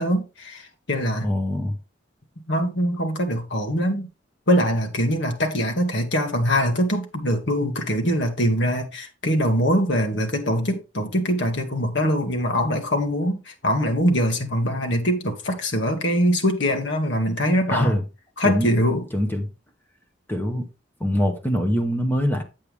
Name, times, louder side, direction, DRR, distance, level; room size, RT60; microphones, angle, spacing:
voice 1, 0.0-1.3 2.5-4.1 4.5-18.0 18.4-19.1, equal, 65° left, 2.0 m, -23 dB
voice 2, 1.2-1.8 17.7-18.0 18.4-18.7 19.1-19.5 20.3-20.7 21.0-22.4, equal, 10° left, 1.3 m, -23 dB
8.5 x 8.0 x 3.4 m
head